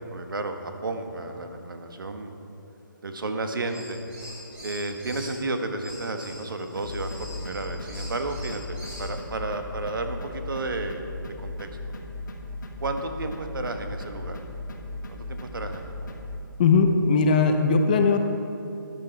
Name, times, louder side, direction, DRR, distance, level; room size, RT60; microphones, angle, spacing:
voice 1, 0.0-2.3 3.0-4.0 4.6-11.1 11.4-11.7 12.8-14.4 15.1-15.9, right 2 dB, 70° right, 6 dB, 1.3 m, -32 dB
sound 1, 3.6-5.4 5.8-9.1, equal, 10° right, 2.5 m, -43 dB
sound 2, 6.8-16.4, left 2 dB, 60° left, 1.6 m, -37 dB
voice 2, 16.6-18.2, left 4 dB, 25° left, 6 dB, 0.6 m, -19 dB
13.5 x 10.5 x 4.5 m, 2.8 s
hypercardioid pair, 165°, 11 cm